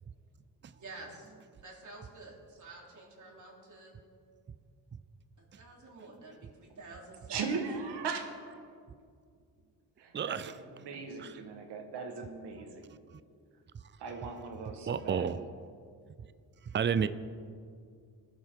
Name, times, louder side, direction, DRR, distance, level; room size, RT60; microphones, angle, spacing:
voice 1, 0.7-1.3 1.6-3.9 5.4-7.5, right 2 dB, 45° right, -3 dB, 3.6 m, -49 dB
voice 2, 7.3-8.7 10.0-12.9 14.0-15.3, right 5 dB, 85° right, 4 dB, 1.7 m, -39 dB
voice 3, 10.1-10.5 11.2-11.3 14.9-15.5 16.7-17.1, right 7 dB, 30° right, 14 dB, 0.5 m, -30 dB
20.5 x 8.0 x 3.8 m, 2.2 s
cardioid pair, 80°, 40 cm